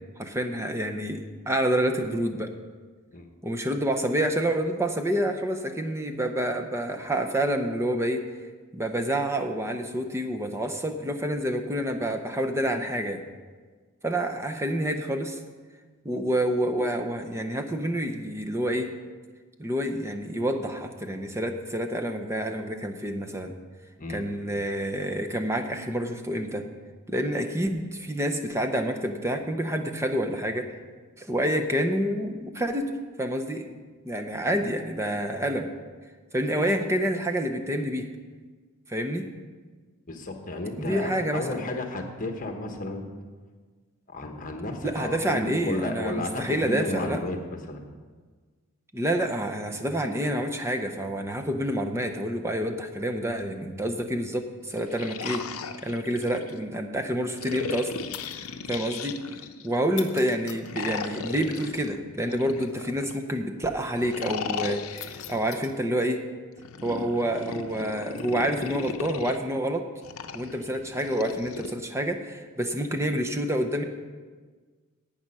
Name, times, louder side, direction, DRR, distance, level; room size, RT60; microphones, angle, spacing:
voice 1, 0.2-2.5 3.4-8.2 8.7-13.2 14.0-15.4 16.0-18.9 19.6-23.5 24.1-26.7 27.1-30.7 31.2-32.9 33.2-33.7 34.1-35.7 36.3-38.1 38.9-39.3 40.8-41.6 44.8-47.2 48.9-55.5 55.8-57.9 58.7-59.2 59.6-66.2 66.8-69.9 70.3-73.8, right 1 dB, 10° right, 6 dB, 0.7 m, -28 dB
voice 2, 40.1-43.1 44.1-47.8, left 2 dB, 40° left, 4 dB, 1.2 m, -33 dB
sound 1, 54.6-56.6 57.4-59.7 60.6-63.2 64.0-65.6 66.6-69.4 70.0-71.7, left 5 dB, 75° left, 0.7 m, -37 dB
sound 2, 58.1-58.6 59.9-60.7 62.7-62.8 65.0-65.8 68.2-68.6 71.0-71.2 72.1-72.4, left 10 dB, 55° left, 0.9 m, -43 dB
11.0 x 8.8 x 5.4 m, 1.4 s
head